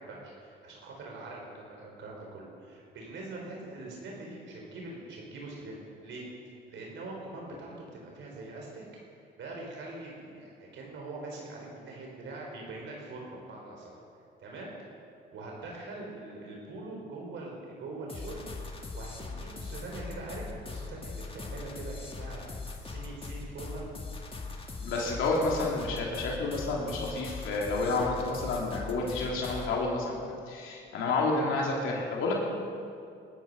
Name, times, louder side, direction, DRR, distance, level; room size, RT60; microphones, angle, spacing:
voice 1, 0.0-6.2 6.5-8.8 9.4-14.0 14.4-14.7 15.3-18.4 18.9-22.5 22.8-23.9, right 2 dB, 70° right, -2 dB, 4.0 m, -43 dB
sound 1, 18.1-29.8, left 3 dB, 30° left, 1.9 m, -40 dB
voice 2, 24.8-30.2 30.5-32.3, left 3 dB, 85° left, -2 dB, 3.0 m, -30 dB
21.5 x 12.5 x 5.4 m, 2.3 s
cardioid pair, 90°, 20 cm